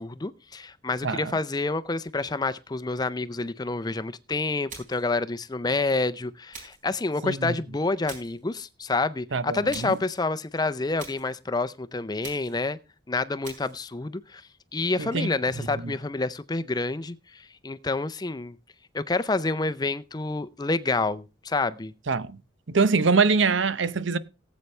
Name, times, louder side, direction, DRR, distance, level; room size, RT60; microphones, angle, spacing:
voice 1, 0.0-12.8 13.1-14.4 14.7-18.6 18.9-21.9, left 3 dB, 20° left, 0.5 m, -28 dB
voice 2, 1.0-1.4 7.2-7.5 9.3-10.0 15.0-15.3 15.6-15.7 22.1-22.4 22.7-24.2, right 4 dB, 75° right, 0.7 m, -24 dB
sound 1, 4.7-5.1 6.5-6.9 8.1-8.4 9.7-10.1 11.0-11.4 12.2-12.7 13.4-13.8, right 4 dB, 40° right, 3.9 m, -44 dB
18.0 x 8.2 x 3.2 m
head